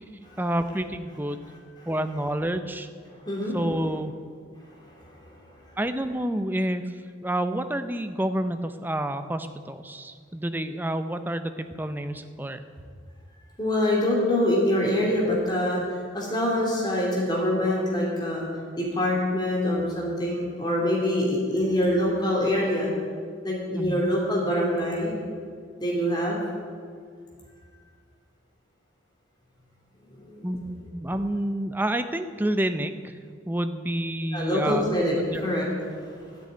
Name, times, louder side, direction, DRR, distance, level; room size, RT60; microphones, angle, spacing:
voice 1, 0.4-1.5 1.9-2.9 3.5-4.1 5.8-6.8 7.2-12.6 23.7-24.1 30.4-33.1 33.5-35.0 35.2-35.4, right 1 dB, 10° right, 9 dB, 0.5 m, -29 dB
voice 2, 3.2-3.6 5.2-5.3 13.6-15.8 16.1-18.5 18.8-22.9 23.4-25.1 25.8-26.4 30.1-30.5 34.3-35.7 36.2-36.4, left 1 dB, 20° left, -3 dB, 2.9 m, -25 dB
12.5 x 6.6 x 9.6 m, 2.1 s
head